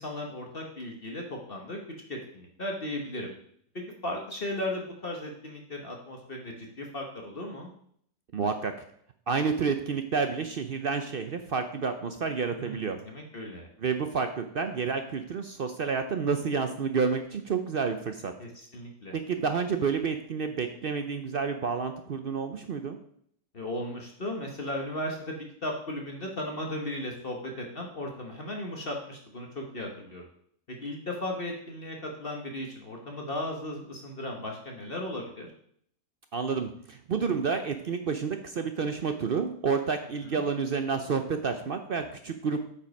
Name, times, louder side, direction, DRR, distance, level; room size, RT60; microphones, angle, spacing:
voice 1, 0.0-1.8 2.1-3.3 3.7-7.7 12.5-13.7 18.4-19.1 23.5-30.2 30.8-35.5 40.2-40.4, left 1 dB, 40° left, 1 dB, 1.3 m, -36 dB
voice 2, 8.3-8.7 9.3-13.0 13.8-18.3 19.1-23.0 36.3-42.6, right 5 dB, 55° right, 7 dB, 0.6 m, -29 dB
8.5 x 5.4 x 5.3 m, 0.65 s
omnidirectional pair, 1.6 m